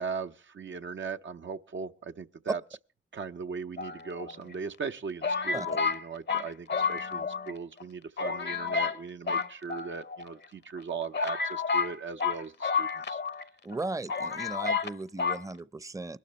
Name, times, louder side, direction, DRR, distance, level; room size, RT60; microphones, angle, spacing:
voice 1, 0.0-2.6 3.1-13.2, right 5 dB, 75° right, 0.7 m, -38 dB
sound 1, 3.8-4.5 5.2-7.5 7.8-7.9 8.2-9.0 9.3-10.2 10.8-10.9 11.1-13.4 13.7-13.8 14.1-14.9 15.2-15.4, left 5 dB, 60° left, 0.7 m, -30 dB
voice 2, 13.6-16.2, right 2 dB, 15° right, 0.6 m, -37 dB
22.0 x 12.0 x 3.1 m
cardioid pair, 45°, 20 cm